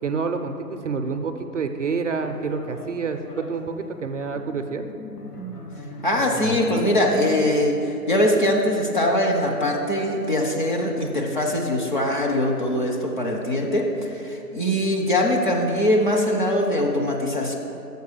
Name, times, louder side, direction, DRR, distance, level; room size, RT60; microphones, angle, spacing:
voice 1, 0.0-4.8, right 4 dB, 50° right, 6 dB, 0.4 m, -28 dB
sound 1, 2.1-7.5, left 1 dB, 75° left, 1.2 m, -38 dB
voice 2, 6.0-17.5, left 1 dB, 30° left, 0 dB, 0.6 m, -22 dB
6.6 x 4.8 x 6.6 m, 2.8 s
hypercardioid pair, 155°, 47 cm